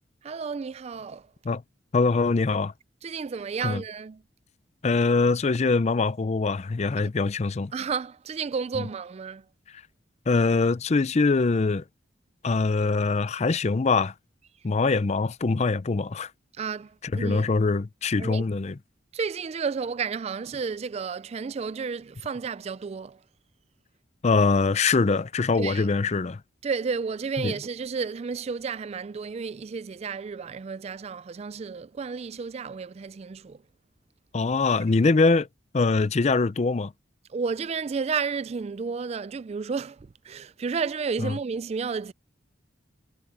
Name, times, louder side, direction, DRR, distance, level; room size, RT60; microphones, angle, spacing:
voice 1, 0.2-1.3 3.0-4.2 7.7-9.5 16.5-17.5 18.2-18.4 19.1-23.2 25.6-25.9 26.6-33.6 37.3-42.1, right 5 dB, 35° right, 0.3 m, -32 dB
voice 2, 1.9-2.7 3.6-3.8 4.8-7.7 10.3-11.8 12.4-14.1 14.6-16.3 17.1-18.7 24.2-26.4 27.4-27.5 34.3-35.5 35.7-36.9 41.2-41.3, left 3 dB, 35° left, 0.5 m, -23 dB
head